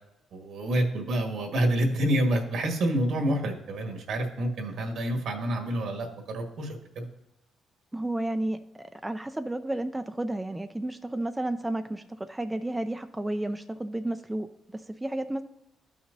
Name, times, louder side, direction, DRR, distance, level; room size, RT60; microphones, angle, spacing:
voice 1, 0.3-7.1, right 1 dB, 70° right, 2 dB, 1.6 m, -28 dB
voice 2, 7.9-15.4, right 1 dB, 10° right, 8 dB, 0.4 m, -32 dB
12.5 x 5.8 x 2.7 m, 0.88 s
cardioid pair, 90°, 0 cm